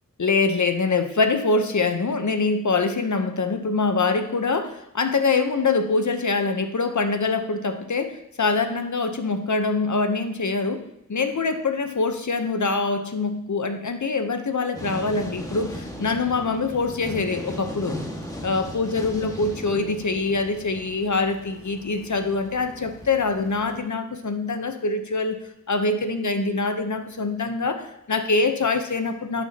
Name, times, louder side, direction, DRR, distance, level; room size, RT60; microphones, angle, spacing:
voice 1, 0.2-10.8 11.1-18.0 18.4-25.4 25.7-29.4, left 3 dB, 60° left, 8 dB, 0.9 m, -24 dB
sound 1, 14.7-23.8, equal, 10° left, 1.7 m, -37 dB
11.5 x 6.6 x 2.9 m, 0.80 s
wide cardioid pair, 45°, 33 cm